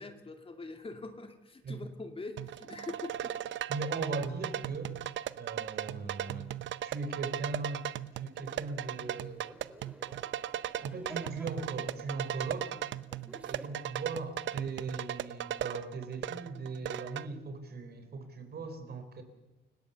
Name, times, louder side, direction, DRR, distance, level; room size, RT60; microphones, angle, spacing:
voice 1, 0.0-3.4, left 3 dB, 30° left, 6 dB, 2.5 m, -43 dB
sound 1, 2.4-17.3, right 11 dB, 70° right, 0.8 m, -37 dB
voice 2, 3.7-5.0 5.4-6.5 6.8-7.9 8.1-9.4 10.8-12.8 13.4-19.2, right 3 dB, 55° right, 8 dB, 4.0 m, -39 dB
sound 2, 8.6-13.7, right 1 dB, 5° right, 3.3 m, -53 dB
29.0 x 16.5 x 6.9 m, 1.1 s
cardioid pair, 90°, 20 cm